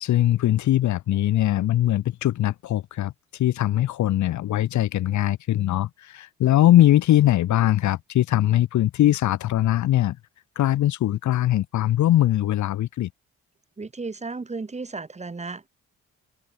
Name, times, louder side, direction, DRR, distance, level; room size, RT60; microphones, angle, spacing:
voice 1, 0.0-10.2 10.6-13.1, left 13 dB, 70° left, 1.1 m, -21 dB
voice 2, 13.8-15.7, right 3 dB, 20° right, 2.2 m, -34 dB
cardioid pair, 90°, 30 cm